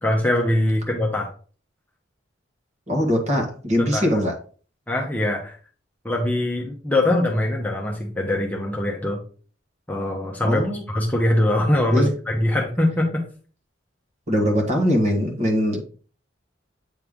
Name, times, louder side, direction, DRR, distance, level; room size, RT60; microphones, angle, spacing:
voice 1, 0.0-1.3 3.8-4.2 4.9-5.6 6.0-9.2 9.9-10.6 10.9-13.2, left 1 dB, 10° left, -1 dB, 0.9 m, -22 dB
voice 2, 2.9-4.3 10.4-10.8 11.9-12.1 14.3-15.9, equal, 35° right, 2 dB, 1.5 m, -21 dB
8.1 x 3.2 x 3.7 m, 0.40 s
head